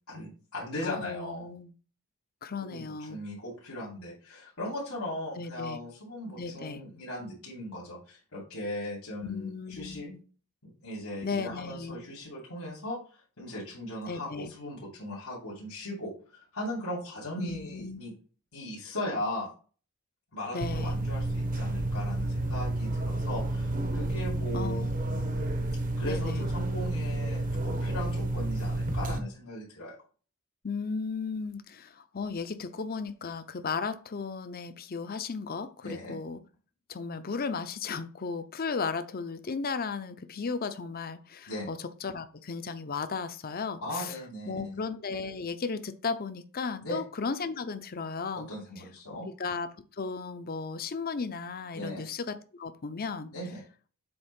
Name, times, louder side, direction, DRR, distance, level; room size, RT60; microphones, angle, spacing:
voice 1, 0.1-1.4 2.6-2.8 3.1-10.1 10.6-13.0 13.4-16.1 16.5-18.1 18.5-19.5 20.3-24.9 26.0-29.9 35.8-36.2 41.5-41.7 43.8-44.8 46.8-47.0 48.5-49.3 51.7-52.0 53.3-53.6, left 1 dB, 85° left, 2.9 m, -38 dB
voice 2, 0.8-1.7 2.4-3.2 5.4-5.8 6.4-6.8 9.2-10.2 11.2-12.0 14.1-14.5 17.4-18.0 20.5-21.0 24.5-25.4 26.0-26.5 30.6-36.4 36.9-44.2 44.5-48.5 49.4-49.7 50.0-53.3, left 4 dB, 45° left, 0.6 m, -35 dB
sound 1, 20.6-29.2, right 1 dB, 40° right, 0.9 m, -30 dB
7.9 x 3.6 x 5.7 m
head